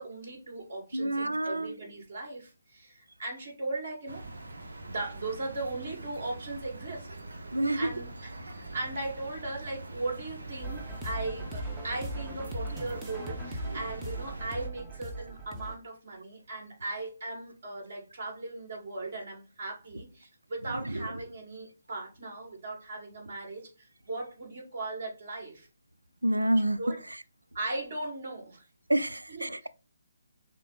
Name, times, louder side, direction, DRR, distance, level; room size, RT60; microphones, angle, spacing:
voice 1, 0.0-4.2 4.8-7.1 7.7-25.7 26.8-27.0 27.5-28.7 29.3-29.4, right 2 dB, 50° right, 2.2 m, -38 dB
voice 2, 0.9-1.8 7.5-7.9 13.7-13.8 20.7-21.2 26.2-26.8 28.9-29.7, right 1 dB, 90° right, 0.4 m, -28 dB
sound 1, 4.1-14.7, right 2 dB, 75° right, 0.9 m, -43 dB
sound 2, 10.6-15.7, right 2 dB, 15° right, 0.8 m, -39 dB
6.2 x 2.1 x 4.0 m
figure-of-eight pair, 140°, 0 cm